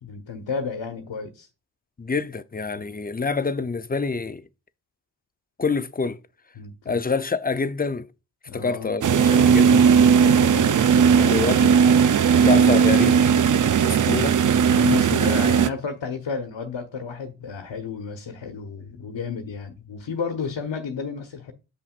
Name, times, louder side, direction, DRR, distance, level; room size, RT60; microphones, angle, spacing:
voice 1, 0.0-1.5 2.7-3.0 6.6-7.0 8.5-8.9 10.2-11.7 13.7-14.2 14.6-21.5, left 5 dB, 65° left, 1.2 m, -32 dB
voice 2, 2.0-4.4 5.6-6.2 6.9-8.1 8.5-9.9 11.2-11.7 12.4-13.2 13.8-14.3, left 4 dB, 20° left, 0.6 m, -26 dB
sound 1, 9.0-15.7, right 7 dB, 40° right, 0.6 m, -17 dB
6.7 x 5.8 x 2.4 m
supercardioid pair, 45°, 47 cm